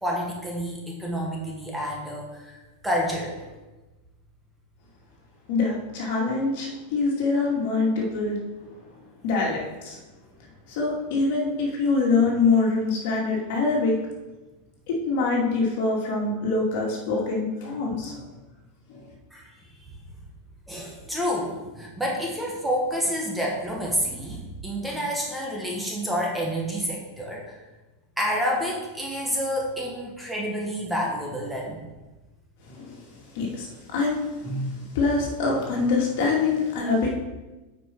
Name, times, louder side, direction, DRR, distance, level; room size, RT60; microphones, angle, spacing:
voice 1, 0.0-2.5 2.8-3.4 19.3-19.5 20.7-27.6 28.2-31.8, equal, 5° right, -3 dB, 1.4 m, -29 dB
voice 2, 5.5-8.4 9.2-10.0 10.7-13.9 14.9-18.2 18.9-19.0 32.7-33.0 33.3-37.1, left 3 dB, 60° left, -2 dB, 2.4 m, -24 dB
8.8 x 5.2 x 4.6 m, 1.1 s
supercardioid pair, 155°, 0 cm